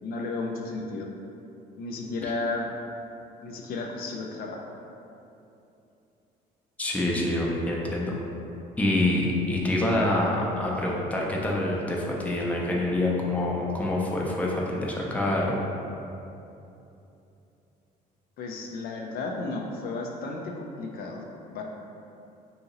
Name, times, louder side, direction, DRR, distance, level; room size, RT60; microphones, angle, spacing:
voice 1, 0.0-1.1 1.8-2.7 3.4-4.7 18.4-21.6, left 3 dB, 60° left, 0 dB, 0.4 m, -33 dB
voice 2, 6.8-8.1 8.8-15.7, left 1 dB, 10° left, -3 dB, 0.5 m, -26 dB
2.8 x 2.8 x 3.8 m, 2.8 s
cardioid pair, 110°, 17 cm